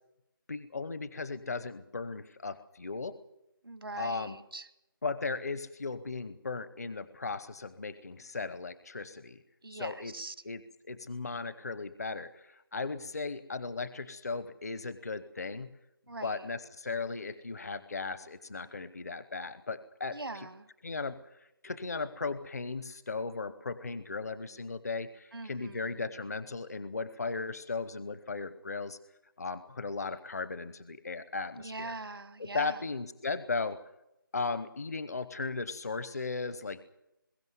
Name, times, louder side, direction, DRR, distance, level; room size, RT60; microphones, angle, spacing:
voice 1, 0.5-3.2 4.0-4.4 5.0-9.4 9.7-10.1 10.4-10.6 10.9-15.7 16.2-20.2 20.8-21.2 21.6-29.0 29.4-31.9 32.4-33.8 34.3-36.8, left 4 dB, 45° left, 14 dB, 0.9 m, -36 dB
voice 2, 3.6-4.7 9.6-10.4 16.1-16.5 20.1-20.7 25.3-26.1 31.6-32.8, right 2 dB, 90° right, 12 dB, 1.8 m, -42 dB
22.5 x 14.5 x 9.5 m, 0.89 s
figure-of-eight pair, 175°, 12 cm